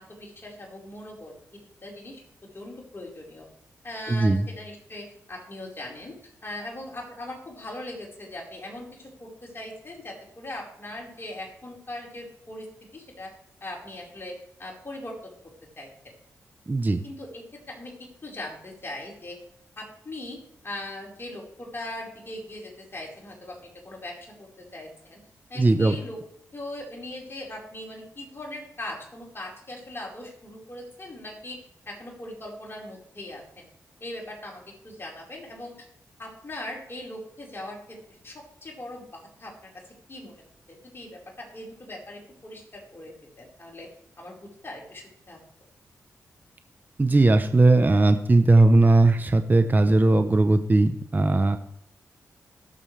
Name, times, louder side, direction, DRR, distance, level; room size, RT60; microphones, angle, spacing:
voice 1, 0.0-1.3 1.8-2.2 2.5-3.5 3.8-12.7 12.9-13.3 13.6-16.1 17.0-17.4 17.7-19.4 19.8-25.2 25.5-26.2 26.5-33.7 34.0-35.9 36.2-38.0 38.2-39.7 40.1-40.3 40.7-43.9 44.2-45.4, left 1 dB, 40° left, -1 dB, 4.7 m, -40 dB
voice 2, 4.1-4.5 16.7-17.0 25.6-26.0 47.0-51.6, right 2 dB, 30° right, 8 dB, 0.9 m, -19 dB
18.5 x 7.2 x 3.3 m, 0.72 s
supercardioid pair, 45°, 6 cm